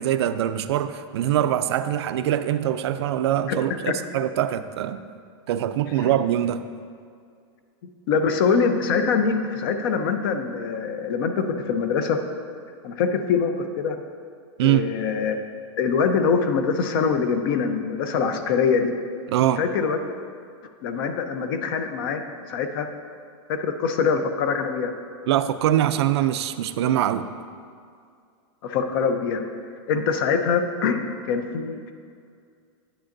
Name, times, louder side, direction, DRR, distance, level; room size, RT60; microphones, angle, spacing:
voice 1, 0.0-5.0 5.5-6.6 14.6-14.9 19.3-19.6 25.3-27.3, right 11 dB, 70° right, 11 dB, 0.4 m, -23 dB
voice 2, 8.1-12.2 12.8-14.0 14.6-15.4 15.8-18.9 19.6-20.0 20.8-22.2 22.5-22.9 23.5-24.9 28.6-29.4 29.9-31.9, left 5 dB, 50° left, 7 dB, 0.7 m, -24 dB
10.0 x 8.8 x 2.6 m, 2.2 s
supercardioid pair, 160°, 15 cm